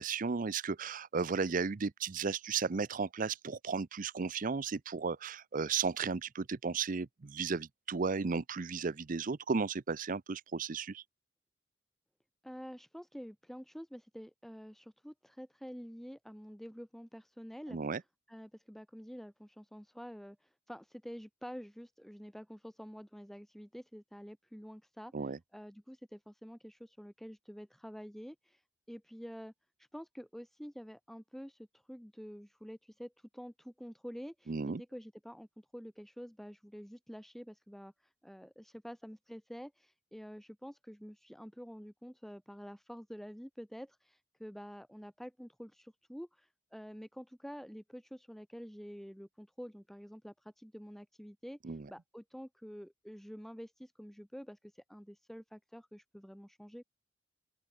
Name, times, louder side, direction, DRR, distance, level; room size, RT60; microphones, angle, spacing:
voice 1, 0.0-11.0 17.7-18.0 25.1-25.4 34.5-34.8 51.6-51.9, right 5 dB, 45° right, 0.6 m, -34 dB
voice 2, 12.4-17.8 18.3-28.6 28.9-29.5 29.8-56.8, equal, ahead, 2.5 m, -48 dB
open air
head